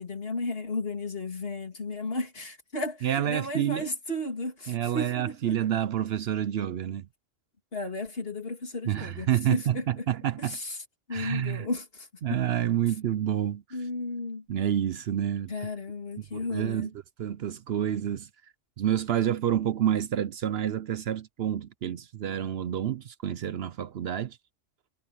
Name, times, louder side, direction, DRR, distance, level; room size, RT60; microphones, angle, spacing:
voice 1, 0.0-5.6 7.7-10.0 10.4-10.8 11.1-12.4 13.7-14.4 15.5-16.9, left 2 dB, 55° left, 3.0 m, -34 dB
voice 2, 3.0-3.9 4.7-7.1 8.9-10.6 11.1-11.7 12.2-13.6 14.5-15.5 16.3-16.9 17.2-18.3 18.8-24.4, right 10 dB, 65° right, 0.8 m, -28 dB
omnidirectional pair, 1.2 m